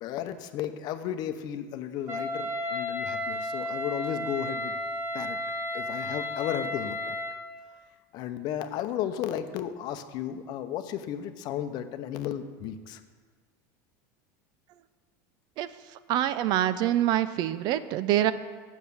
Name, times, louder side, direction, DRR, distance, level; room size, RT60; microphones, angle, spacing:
voice 1, 0.0-4.8 5.1-5.4 5.7-7.2 8.1-13.0, left 10 dB, 50° left, 9 dB, 0.8 m, -34 dB
Wind instrument woodwind instrument, 2.1-7.4, left 1 dB, 20° right, 1.9 m, -33 dB
voice 2, 16.1-18.3, right 12 dB, 50° right, 14 dB, 0.5 m, -25 dB
8.4 x 7.2 x 6.9 m, 1.5 s
supercardioid pair, 130°, 9 cm